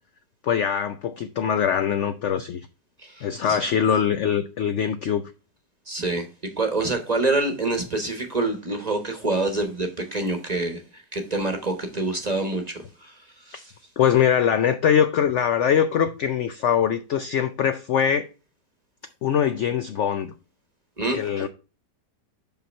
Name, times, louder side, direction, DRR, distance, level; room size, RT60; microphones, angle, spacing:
voice 1, 0.4-2.6 3.2-5.2 14.0-18.3 19.2-20.3 21.1-21.5, left 8 dB, 75° left, 0.6 m, -22 dB
voice 2, 3.0-3.6 5.9-6.3 6.6-13.2 13.5-13.7 21.0-21.5, right 2 dB, 30° right, 1.0 m, -27 dB
5.7 x 5.6 x 4.3 m
omnidirectional pair, 1.8 m